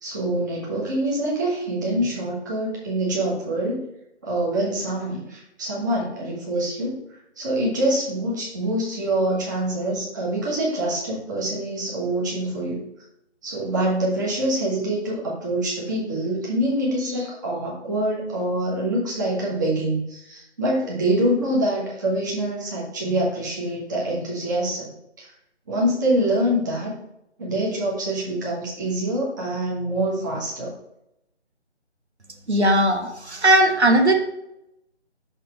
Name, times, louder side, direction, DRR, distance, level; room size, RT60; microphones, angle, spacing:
voice 1, 0.0-3.8 4.2-7.0 7.4-12.9 13.4-24.9 25.2-25.3 25.7-26.9 27.4-30.7, right 1 dB, 15° right, -5 dB, 1.2 m, -25 dB
voice 2, 32.5-34.1, right 1 dB, 65° right, 4 dB, 1.2 m, -18 dB
6.3 x 4.2 x 4.8 m, 0.81 s
figure-of-eight pair, 155°, 35 cm